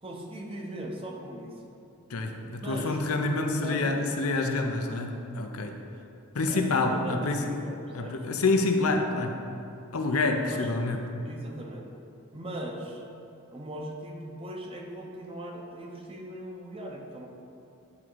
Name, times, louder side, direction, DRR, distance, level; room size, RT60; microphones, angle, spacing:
voice 1, 0.0-1.6 2.6-4.0 6.5-8.3 10.5-10.7 11.2-11.9 12.3-13.1 13.5-17.3, right 1 dB, 25° right, 0 dB, 0.8 m, -39 dB
voice 2, 2.1-5.7 6.3-7.4 7.9-9.4 9.9-11.2, left 3 dB, 75° left, 4 dB, 0.7 m, -27 dB
9.8 x 3.7 x 4.6 m, 2.6 s
head